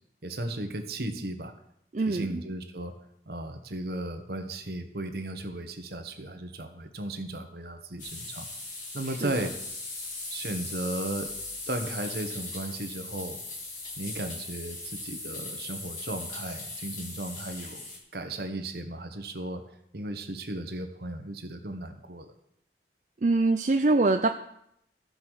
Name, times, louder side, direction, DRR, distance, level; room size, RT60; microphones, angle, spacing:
voice 1, 0.2-1.5 2.1-2.9 3.3-8.5 8.9-9.5 10.3-11.3 11.7-13.4 14.0-17.8 18.1-19.6 19.9-22.3, right 1 dB, 60° right, 6 dB, 1.2 m, -35 dB
voice 2, 1.9-2.4 9.1-9.5 23.2-24.3, right 3 dB, 45° right, 5 dB, 0.5 m, -24 dB
sound 1, 8.0-18.0, left 2 dB, 45° left, 2.5 m, -39 dB
14.0 x 5.3 x 6.3 m, 0.75 s
head